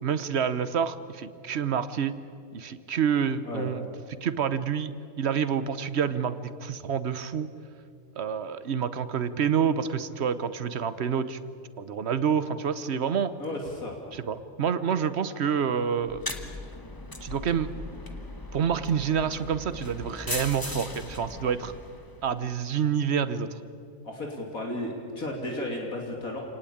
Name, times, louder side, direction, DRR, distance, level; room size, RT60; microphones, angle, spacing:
voice 1, 0.0-2.2 2.5-3.8 4.2-4.9 5.2-7.5 8.2-11.4 11.8-13.3 14.1-16.2 17.2-17.7 18.5-21.7 22.2-23.5, right 7 dB, 50° right, 13 dB, 1.1 m, -28 dB
voice 2, 13.4-14.0 22.4-22.5 24.0-26.4, left 1 dB, 65° left, 0 dB, 3.3 m, -34 dB
sound 1, 16.0-22.4, left 2 dB, 15° left, 1.2 m, -39 dB
28.0 x 19.0 x 8.7 m, 2.4 s
omnidirectional pair, 1.6 m